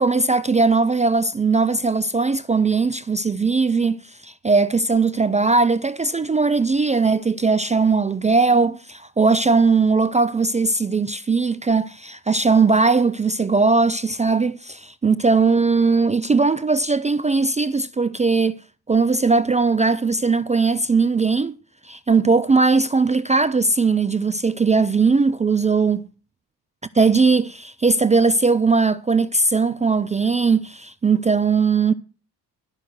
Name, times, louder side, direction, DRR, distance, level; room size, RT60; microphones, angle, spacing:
voice 1, 0.0-4.0 4.2-18.6 18.9-21.6 21.8-26.0 26.9-31.9, right 4 dB, 15° right, 0.5 m, -19 dB
12.5 x 5.9 x 7.9 m
hypercardioid pair, 55°, 49 cm